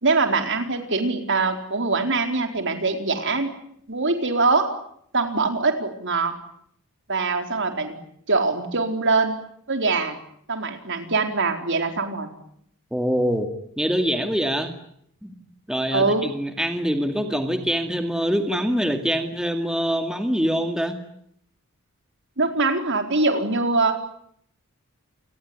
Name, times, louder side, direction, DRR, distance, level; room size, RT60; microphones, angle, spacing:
voice 1, 0.0-3.5 3.9-4.7 5.1-6.3 7.1-8.0 8.3-9.3 9.7-10.2 10.5-12.3 15.9-16.3 22.4-24.0, right 3 dB, 55° right, 6 dB, 4.3 m, -23 dB
voice 2, 12.9-13.5 13.8-14.7 15.2-15.3 15.7-21.0, equal, 5° right, 5 dB, 2.3 m, -24 dB
29.0 x 20.5 x 9.6 m, 0.70 s
head